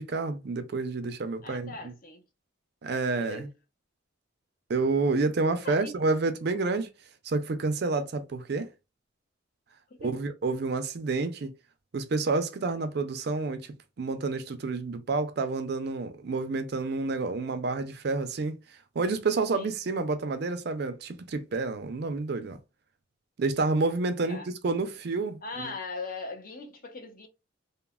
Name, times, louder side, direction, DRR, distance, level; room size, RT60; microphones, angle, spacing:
voice 1, 0.0-1.7 2.8-3.5 4.7-6.9 7.2-8.7 10.0-11.5 11.9-18.6 19.0-22.6 23.4-25.7, right 3 dB, 50° right, 0.4 m, -29 dB
voice 2, 1.4-2.2 3.1-3.5 5.6-5.9 9.9-10.2 19.5-19.7 24.2-24.5 25.4-27.3, left 3 dB, 45° left, 0.5 m, -40 dB
3.0 x 2.0 x 2.2 m
head